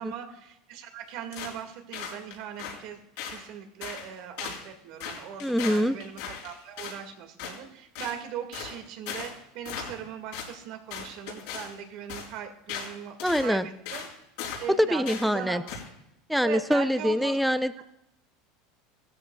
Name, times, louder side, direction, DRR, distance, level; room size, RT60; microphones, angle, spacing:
voice 1, 0.0-14.1 14.6-15.8 16.4-17.4 17.8-17.9, right 8 dB, 60° right, 6 dB, 2.0 m, -39 dB
sound 1, 1.3-1.6 1.9-2.8 3.2-3.4 3.8-4.1 4.4-4.6 5.0-7.0 7.4-7.6 7.9-8.2 8.5-8.8 9.1-9.3 9.6-10.1 10.3-10.5 10.9-11.7 12.1-12.3 12.7-12.9 13.2-13.5 13.9-14.1 14.4-14.7 15.1-15.3 15.7-15.9, left 7 dB, 75° left, 4.3 m, -37 dB
voice 2, 5.4-6.0 13.2-13.7 14.7-15.6 16.3-17.8, equal, ahead, 12 dB, 0.6 m, -24 dB
16.5 x 13.5 x 2.3 m, 0.81 s
supercardioid pair, 125°, 0 cm